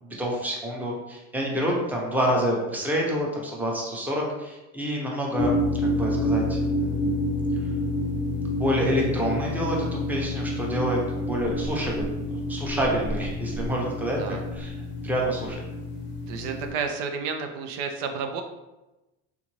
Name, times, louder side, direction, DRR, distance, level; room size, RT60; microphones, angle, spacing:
voice 1, 0.0-7.3 8.6-12.0 12.3-14.2 14.5-14.7 15.0-15.6, equal, 5° right, -2 dB, 0.7 m, -28 dB
sound 1, 5.4-16.7, left 1 dB, 30° left, 0.6 m, -28 dB
voice 2, 16.3-18.4, right 5 dB, 80° right, 5 dB, 0.6 m, -31 dB
3.6 x 2.6 x 3.0 m, 1.0 s
cardioid pair, 125°, 35 cm